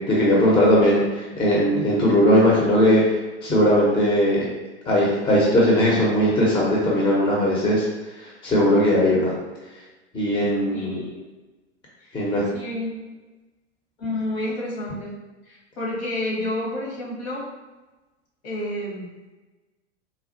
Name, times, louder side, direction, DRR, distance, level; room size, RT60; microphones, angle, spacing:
voice 1, 0.1-4.4 4.9-7.8 8.4-9.3 10.1-11.0 12.1-12.4, equal, 15° left, -4 dB, 0.7 m, -19 dB
voice 2, 10.7-11.2 12.0-12.2 12.5-12.9 14.0-15.1 15.5-17.4 18.4-19.1, left 1 dB, 60° left, -4 dB, 1.4 m, -29 dB
4.1 x 2.3 x 2.6 m, 1.2 s
figure-of-eight pair, 95°, 35 cm